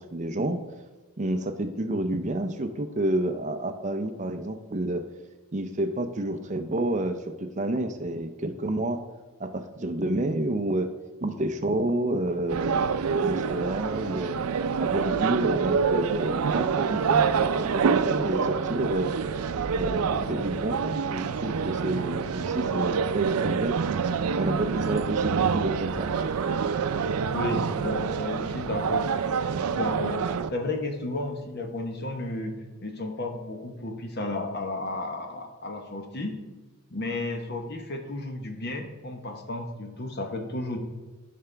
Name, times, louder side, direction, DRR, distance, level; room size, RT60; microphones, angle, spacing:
voice 1, 0.1-0.6 1.2-5.0 5.5-9.0 9.4-10.9 11.2-14.4 14.8-19.1 19.8-23.8 24.4-26.1, right 1 dB, 35° right, 7 dB, 0.5 m, -29 dB
sound 1, 12.5-30.5, right 6 dB, 85° right, 0.4 m, -27 dB
voice 2, 27.3-29.1 29.7-30.2 30.5-36.4 36.9-40.8, left 2 dB, 45° left, 4 dB, 1.1 m, -33 dB
13.5 x 5.8 x 3.4 m, 1.2 s
head